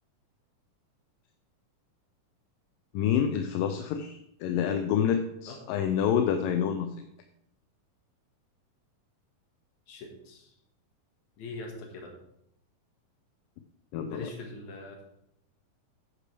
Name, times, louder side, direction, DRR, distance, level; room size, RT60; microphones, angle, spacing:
voice 1, 2.9-7.0 13.9-14.3, left 8 dB, 80° left, 6 dB, 2.2 m, -28 dB
voice 2, 9.9-10.5 11.4-12.1 14.1-15.0, left 3 dB, 55° left, 1 dB, 2.9 m, -42 dB
10.0 x 9.8 x 3.4 m, 0.77 s
omnidirectional pair, 4.2 m